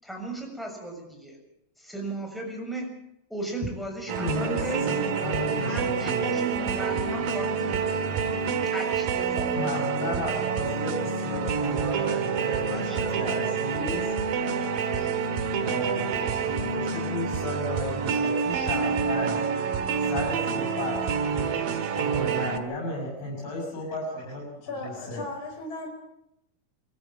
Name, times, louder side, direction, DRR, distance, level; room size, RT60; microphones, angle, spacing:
voice 1, 0.0-1.4 1.8-2.9 3.3-4.8 5.5-8.3 8.7-9.5 12.7-13.5, right 2 dB, ahead, 1 dB, 6.4 m, -36 dB
sound 1, 4.1-22.6, right 6 dB, 65° right, 3.1 m, -27 dB
voice 2, 4.2-6.2 9.5-14.1 14.9-15.1 15.6-19.5 20.0-24.5 24.8-25.2, left 1 dB, 60° left, -1 dB, 8.0 m, -34 dB
voice 3, 24.6-25.9, left 2 dB, 30° left, 1 dB, 5.4 m, -36 dB
25.0 x 14.0 x 8.9 m, 0.81 s
omnidirectional pair, 4.3 m